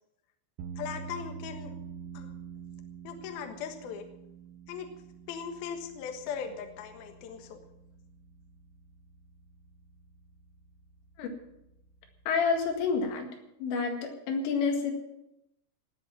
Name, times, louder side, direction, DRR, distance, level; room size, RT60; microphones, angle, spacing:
sound 1, 0.6-13.1, right 6 dB, 75° right, 3.2 m, -47 dB
voice 1, 0.8-1.7 2.1-2.3 3.0-4.1 4.7-4.9 5.3-7.6, left 7 dB, 65° left, 5 dB, 2.8 m, -39 dB
voice 2, 12.3-13.3 13.6-14.9, left 5 dB, 80° left, 3 dB, 4.5 m, -28 dB
18.0 x 8.4 x 7.3 m, 0.85 s
omnidirectional pair, 5.6 m